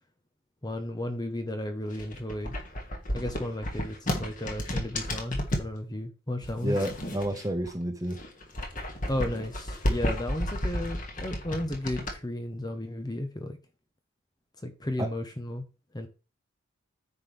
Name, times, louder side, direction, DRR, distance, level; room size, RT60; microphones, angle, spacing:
voice 1, 0.6-2.5 3.1-6.8 9.1-13.6 14.6-15.6 15.9-16.1, left 1 dB, 20° left, 1.0 m, -34 dB
sound 1, 1.9-5.7 6.4-7.7 8.0-12.1, equal, 40° left, 2.1 m, -32 dB
voice 2, 6.6-8.2 15.0-15.1, right 1 dB, 15° right, 1.2 m, -30 dB
9.6 x 5.9 x 3.4 m
head